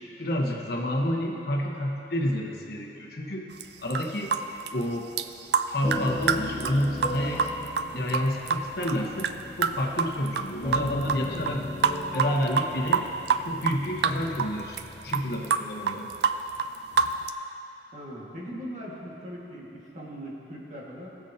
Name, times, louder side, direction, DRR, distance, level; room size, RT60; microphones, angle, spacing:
voice 1, 0.2-3.5 3.8-4.3 4.7-5.1 5.7-7.5 7.9-9.3 9.6-11.6 12.1-13.1 13.4-14.8 15.0-16.1, equal, 60° left, -1 dB, 1.2 m, -29 dB
sound 1, 3.6-3.7 3.9-4.4 4.7-4.8 5.2-5.3 5.5-9.3 9.6-10.5 10.7-11.2 11.5-11.6 11.8-13.8 14.0-14.5 14.7-14.8 15.1-17.3, right 6 dB, 65° right, 0.4 m, -25 dB
sound 2, 5.8-15.4, left 2 dB, 20° left, 1.8 m, -37 dB
voice 2, 17.9-21.2, equal, 45° right, -5 dB, 1.9 m, -40 dB
20.0 x 7.1 x 2.8 m, 3.0 s
head